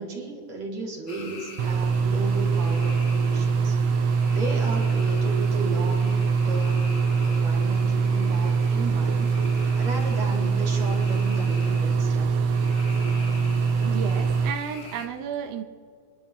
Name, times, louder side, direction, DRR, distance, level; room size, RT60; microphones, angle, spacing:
voice 1, 0.0-3.8 4.3-6.1 6.5-6.9 7.2-12.4, right 3 dB, 60° right, 3.9 m, -35 dB
sound 1, 1.1-15.1, left 3 dB, 45° left, 1.9 m, -43 dB
sound 2, 1.6-14.5, right 5 dB, 90° right, 1.4 m, -23 dB
voice 2, 13.7-15.6, right 8 dB, 75° right, 1.5 m, -32 dB
25.5 x 11.5 x 3.5 m
omnidirectional pair, 3.6 m